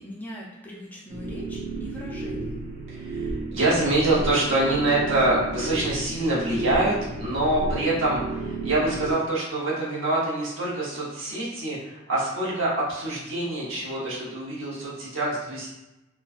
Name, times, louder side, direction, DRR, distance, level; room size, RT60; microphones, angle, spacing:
voice 1, 0.0-2.6 13.4-13.9, left 1 dB, 10° left, -4 dB, 0.3 m, -41 dB
sound 1, 1.1-9.1, right 3 dB, 45° right, 0.6 m, -33 dB
voice 2, 2.9-15.7, right 2 dB, 65° right, -6 dB, 0.9 m, -25 dB
3.0 x 2.2 x 2.4 m, 0.99 s
head